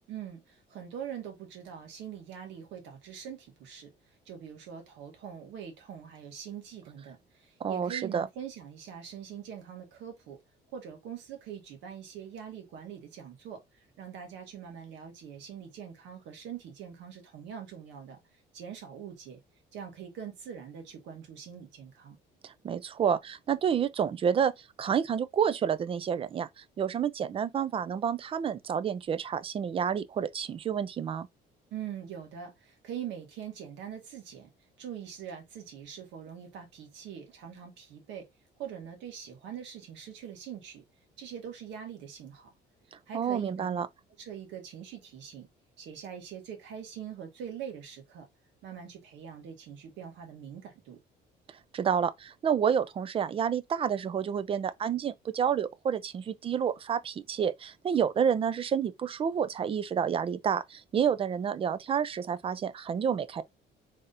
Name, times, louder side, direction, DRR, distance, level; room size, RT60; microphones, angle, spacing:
voice 1, 0.1-10.4 10.7-19.4 19.7-22.2 31.7-34.5 34.8-38.3 38.6-40.8 41.2-42.5 43.1-43.8 44.2-45.5 45.8-48.3 48.6-51.0, right 8 dB, 80° right, 1.7 m, -43 dB
voice 2, 7.6-8.3 22.4-31.3 42.9-43.9 51.7-63.4, right 8 dB, 30° right, 0.4 m, -29 dB
4.0 x 3.5 x 2.5 m
cardioid pair, 145°, 18 cm